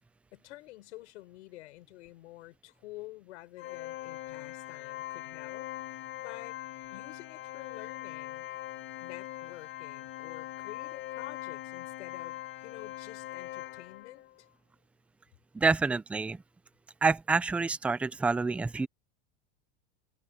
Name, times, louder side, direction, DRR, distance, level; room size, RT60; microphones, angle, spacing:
voice 1, 0.3-5.7 6.2-6.6 6.9-8.5 9.0-14.5, left 18 dB, 75° left, 5.5 m, -49 dB
Organ, 3.6-14.3, left 15 dB, 35° left, 4.2 m, -41 dB
voice 2, 15.5-16.4 17.0-18.9, right 4 dB, 5° right, 0.5 m, -27 dB
supercardioid pair, 160°, 35 cm